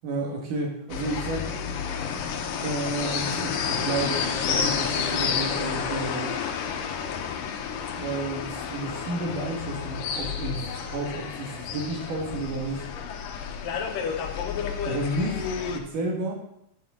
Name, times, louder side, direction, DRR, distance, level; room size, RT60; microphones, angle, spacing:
voice 1, 0.0-1.5 2.6-6.4 8.0-12.9 14.8-16.3, right 2 dB, 60° right, 0 dB, 2.6 m, -31 dB
sound 1, 0.9-15.8, left 7 dB, 75° left, 2.0 m, -30 dB
9.5 x 9.0 x 3.7 m, 0.77 s
omnidirectional pair, 5.0 m